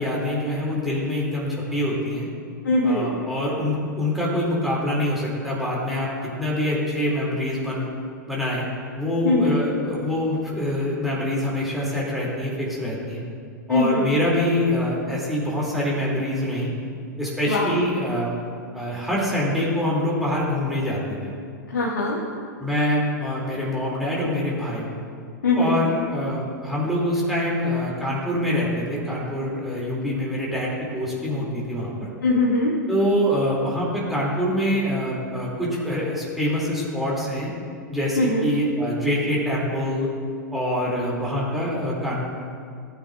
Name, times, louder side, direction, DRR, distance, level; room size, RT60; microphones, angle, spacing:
voice 1, 0.0-2.3 2.8-7.9 8.3-8.7 9.0-13.2 13.7-16.7 17.2-18.4 18.7-21.3 22.6-24.9 25.6-32.1 32.9-37.5 37.9-40.1 40.5-42.2, left 1 dB, ahead, -6 dB, 2.7 m, -25 dB
voice 2, 2.6-3.2 9.2-9.6 13.7-14.2 17.5-17.8 21.7-22.2 25.4-25.8 32.2-32.7 38.2-38.5, left 2 dB, 85° left, -7 dB, 1.7 m, -21 dB
15.5 x 8.8 x 2.5 m, 2.2 s
hypercardioid pair, 105°, 10 cm